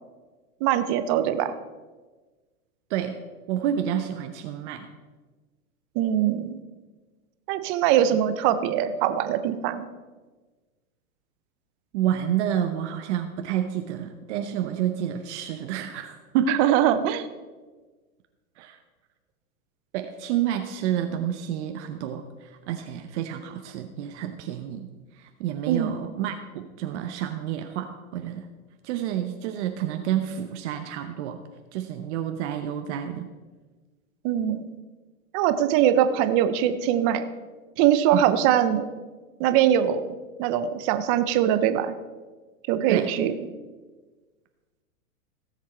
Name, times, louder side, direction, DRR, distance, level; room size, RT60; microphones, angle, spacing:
voice 1, 0.6-1.5 6.0-6.6 7.5-9.9 16.5-17.3 25.7-25.9 34.2-34.6 35.3-37.3 37.8-38.9 39.4-40.1 40.4-41.9 42.7-43.3, right 10 dB, 20° right, 11 dB, 0.4 m, -22 dB
voice 2, 3.5-4.9 11.9-16.6 18.6-18.8 19.9-24.9 25.2-28.5 28.8-31.4 31.7-33.3 38.1-38.2 42.9-43.1, right 10 dB, 50° right, 6 dB, 0.9 m, -29 dB
16.5 x 7.4 x 4.3 m, 1.3 s
hypercardioid pair, 130°, 45 cm